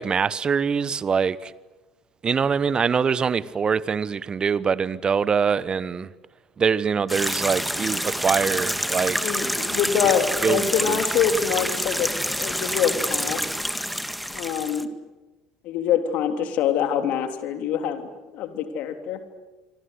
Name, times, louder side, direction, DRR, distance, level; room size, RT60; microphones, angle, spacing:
voice 1, 0.0-1.5 2.2-6.1 6.6-9.4 10.4-11.0, right 6 dB, 30° right, 1.1 m, -24 dB
sound 1, 7.1-14.8, equal, ahead, 2.0 m, -27 dB
voice 2, 9.2-13.4 14.3-14.9 15.6-18.1 18.3-19.2, left 8 dB, 55° left, 3.3 m, -25 dB
27.5 x 25.5 x 8.3 m
figure-of-eight pair, 65°, 3 cm